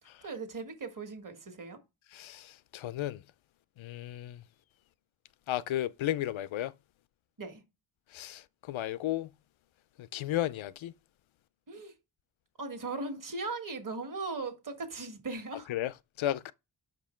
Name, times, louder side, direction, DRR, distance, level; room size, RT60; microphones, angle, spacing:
voice 1, 0.2-1.8 7.4-7.6 11.7-11.9 12.6-15.7, right 3 dB, 45° right, 1.5 m, -38 dB
voice 2, 2.1-3.2 3.8-4.4 5.5-6.7 8.1-9.3 10.0-10.9 15.7-15.9 16.2-16.5, left 13 dB, 85° left, 0.6 m, -34 dB
6.1 x 5.3 x 4.3 m
wide cardioid pair, 110°, 46 cm